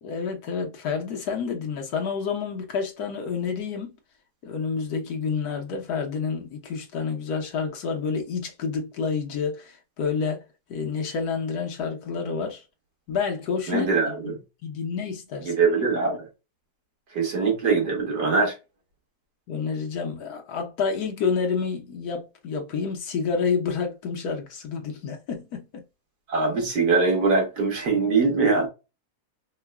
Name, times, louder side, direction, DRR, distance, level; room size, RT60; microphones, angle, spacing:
voice 1, 0.0-4.0 4.4-10.4 10.7-12.6 13.1-14.2 14.6-15.5 19.5-25.8, left 5 dB, 70° left, 1.4 m, -29 dB
voice 2, 13.7-14.3 15.5-16.2 17.1-18.5 26.3-28.7, right 4 dB, 80° right, 2.2 m, -22 dB
4.7 x 2.2 x 2.2 m
omnidirectional pair, 1.7 m